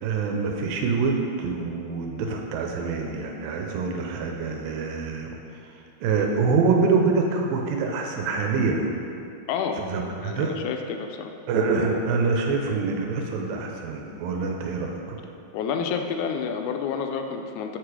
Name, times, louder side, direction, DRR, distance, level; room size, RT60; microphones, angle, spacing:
voice 1, 0.0-5.4 6.0-9.0 9.8-10.5 11.5-15.2, right 4 dB, 90° right, 1 dB, 2.4 m, -25 dB
voice 2, 9.5-9.8 10.2-11.3 15.5-17.8, left 6 dB, 80° left, 5 dB, 1.8 m, -29 dB
7.7 x 4.9 x 4.7 m, 2.6 s
omnidirectional pair, 3.9 m